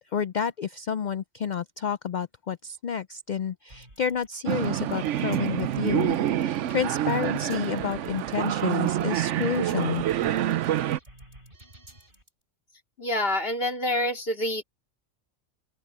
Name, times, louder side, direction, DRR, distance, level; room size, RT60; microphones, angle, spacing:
voice 1, 0.1-10.0, left 7 dB, 80° left, 0.4 m, -30 dB
sound 1, 3.7-12.3, right 1 dB, 40° right, 7.1 m, -51 dB
sound 2, 4.5-11.0, right 12 dB, 75° right, 0.9 m, -27 dB
voice 2, 13.0-14.6, left 1 dB, 45° left, 2.9 m, -27 dB
open air
omnidirectional pair, 1.3 m